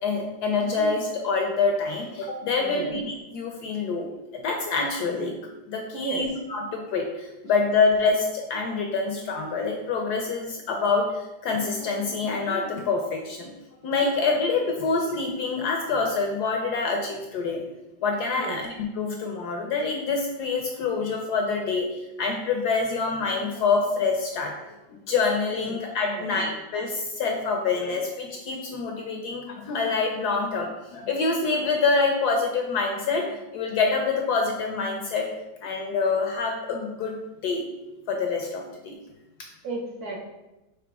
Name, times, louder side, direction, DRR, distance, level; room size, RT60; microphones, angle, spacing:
voice 1, 0.0-4.1 4.3-5.4 5.7-13.5 13.8-17.6 18.0-24.7 25.1-35.3 35.6-37.2 37.4-37.7 38.1-39.0, left 4 dB, 75° left, 2 dB, 1.0 m, -26 dB
voice 2, 2.6-2.9 5.9-6.3 18.4-18.6 25.7-25.8 26.1-26.5 39.6-40.2, right 4 dB, 65° right, 0 dB, 1.0 m, -33 dB
4.9 x 3.1 x 3.4 m, 1.0 s
omnidirectional pair, 2.1 m